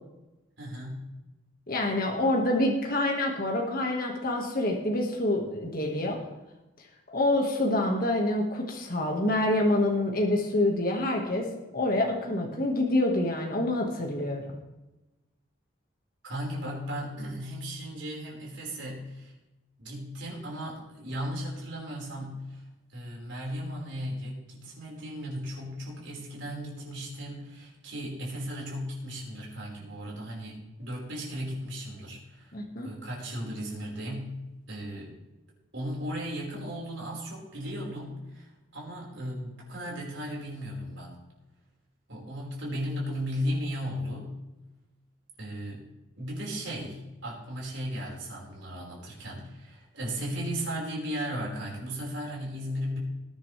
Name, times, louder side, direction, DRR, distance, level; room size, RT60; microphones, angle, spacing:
voice 1, 0.6-1.0 16.2-19.3 19.8-22.6 22.9-32.6 32.8-34.4 34.7-35.2 35.7-41.1 42.1-44.4 45.4-45.9 46.2-53.0, equal, 70° right, -3 dB, 5.2 m, -36 dB
voice 2, 1.7-6.2 7.1-14.4 32.5-32.9, left 1 dB, 45° left, 0 dB, 1.9 m, -27 dB
20.0 x 9.9 x 3.5 m, 1.0 s
head